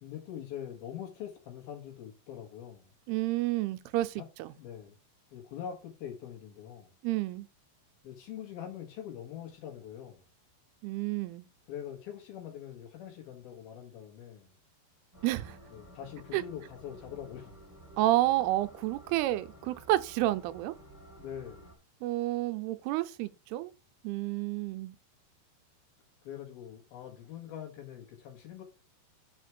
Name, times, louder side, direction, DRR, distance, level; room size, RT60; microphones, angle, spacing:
voice 1, 0.0-2.9 4.2-4.3 4.5-5.0 5.3-6.9 8.0-10.3 11.7-14.5 15.7-17.6 21.2-21.7 26.2-28.6, left 9 dB, 70° left, 3.4 m, -43 dB
voice 2, 3.1-4.5 7.0-7.5 10.8-11.5 15.2-15.6 16.3-16.4 18.0-20.7 22.0-23.7 24.0-25.0, right 16 dB, 80° right, 2.5 m, -30 dB
sound 1, 15.1-21.8, right 1 dB, 10° right, 1.3 m, -53 dB
6.4 x 4.8 x 6.0 m
omnidirectional pair, 4.7 m